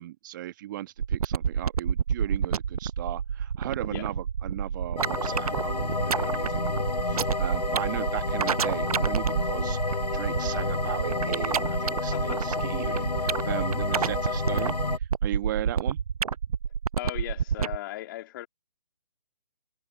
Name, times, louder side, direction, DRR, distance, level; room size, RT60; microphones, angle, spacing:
voice 1, 0.0-16.0, right 14 dB, 30° right, 1.2 m, -37 dB
sound 1, 1.0-17.8, right 7 dB, 60° right, 0.6 m, -29 dB
sound 2, 5.0-15.0, left 3 dB, 80° left, 5.9 m, -30 dB
voice 2, 12.1-12.4 17.0-18.5, left 15 dB, 30° left, 2.7 m, -37 dB
figure-of-eight pair, 145°, 21 cm